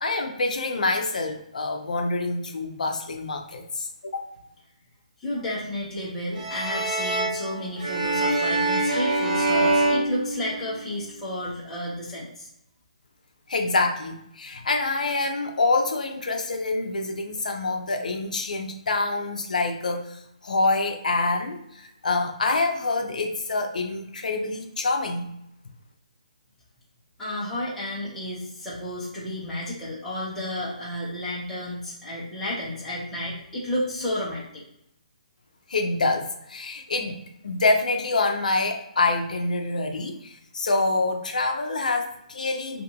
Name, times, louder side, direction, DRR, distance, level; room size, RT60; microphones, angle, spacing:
voice 1, 0.0-4.3 13.5-25.3 35.7-42.8, left 3 dB, 75° left, 3 dB, 0.5 m, -26 dB
voice 2, 5.2-12.5 27.2-34.6, left 1 dB, 5° left, -9 dB, 0.8 m, -32 dB
sound 1, 6.3-11.0, right 2 dB, 85° right, 1.1 m, -25 dB
2.5 x 2.5 x 2.8 m, 0.78 s
hypercardioid pair, 165°, 4 cm